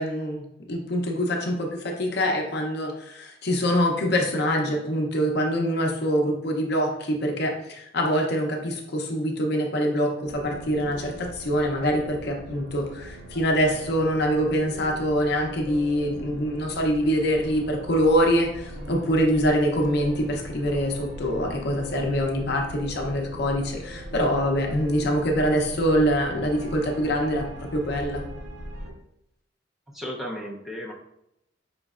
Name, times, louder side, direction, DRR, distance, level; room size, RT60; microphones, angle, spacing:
voice 1, 0.0-28.2, equal, 60° left, 1 dB, 0.7 m, -24 dB
sound 1, 10.2-28.9, right 1 dB, 55° right, 1.0 m, -40 dB
voice 2, 29.9-30.9, equal, ahead, -4 dB, 0.6 m, -34 dB
5.2 x 3.1 x 2.4 m, 0.81 s
head